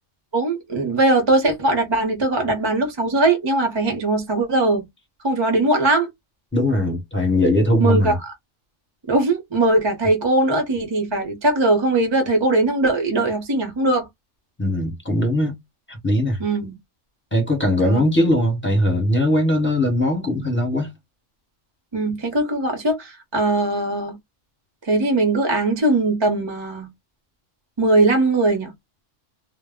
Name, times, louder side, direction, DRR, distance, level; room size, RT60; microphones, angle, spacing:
voice 1, 0.3-4.9 5.2-6.1 7.8-8.3 9.1-14.1 16.4-16.8 17.8-18.0 21.9-24.1 24.8-26.9 27.8-28.7, right 2 dB, 30° right, 0.5 m, -20 dB
voice 2, 6.5-8.2 14.6-15.6 15.9-16.4 17.3-20.9, left 1 dB, 10° left, 0.7 m, -20 dB
2.1 x 2.0 x 3.5 m
omnidirectional pair, 1.3 m